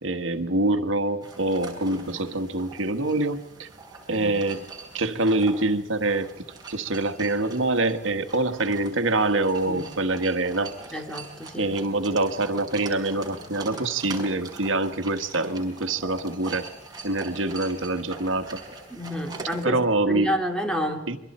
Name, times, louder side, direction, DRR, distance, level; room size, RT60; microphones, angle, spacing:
voice 1, 0.0-3.7 4.1-4.7 4.9-6.3 6.7-10.8 11.6-16.7 17.0-18.6 19.6-20.3 21.1-21.2, right 2 dB, 80° right, 8 dB, 1.5 m, -25 dB
sound 1, 1.2-19.7, right 3 dB, 20° right, 5.1 m, -42 dB
voice 2, 10.9-11.7 18.9-21.0, equal, 5° left, 3 dB, 2.8 m, -30 dB
27.5 x 23.0 x 4.3 m, 0.95 s
head